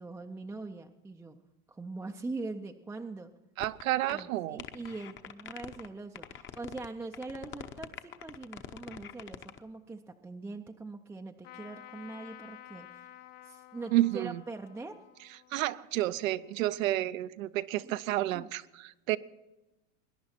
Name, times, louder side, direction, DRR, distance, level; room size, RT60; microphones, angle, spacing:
voice 1, 0.0-1.4 1.7-3.3 4.1-13.1 13.4-15.0 17.8-17.9 18.3-18.5, right 3 dB, 5° right, 3 dB, 0.4 m, -42 dB
sound 1, 3.6-3.8 4.1-4.2 4.6-5.9 6.1-6.9 7.1-9.6, left 9 dB, 30° left, 0.8 m, -44 dB
voice 2, 3.6-4.6 13.9-14.4 15.5-19.2, right 15 dB, 85° right, 16 dB, 0.7 m, -30 dB
Trumpet, 11.4-17.0, left 14 dB, 75° left, 1.3 m, -52 dB
21.0 x 10.5 x 4.4 m, 1.0 s
supercardioid pair, 130°, 39 cm